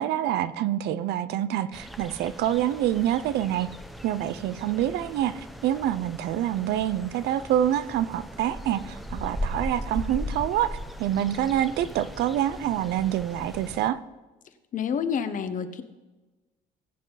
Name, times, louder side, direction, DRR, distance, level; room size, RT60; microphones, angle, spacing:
voice 1, 0.0-3.7 4.0-14.0, right 11 dB, 80° right, 15 dB, 0.6 m, -26 dB
sound 1, 1.7-13.9, equal, ahead, 0.8 m, -38 dB
voice 2, 14.7-15.8, left 7 dB, 50° left, 10 dB, 1.1 m, -28 dB
19.5 x 7.8 x 4.1 m, 1.2 s
cardioid pair, 110°, 17 cm